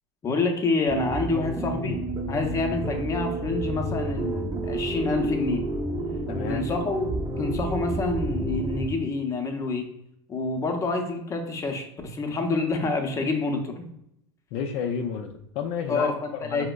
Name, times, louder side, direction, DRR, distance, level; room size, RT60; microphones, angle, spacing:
voice 1, 0.2-2.0 2.3-5.6 6.5-9.9 10.3-13.9 15.9-16.7, left 3 dB, 25° left, 3 dB, 0.6 m, -27 dB
sound 1, 0.9-8.9, right 2 dB, 25° right, 0.6 m, -30 dB
voice 2, 6.3-6.7 14.5-16.1 16.3-16.7, left 6 dB, 60° left, 3 dB, 0.4 m, -31 dB
4.9 x 2.1 x 2.2 m, 0.77 s
supercardioid pair, 105°, 13 cm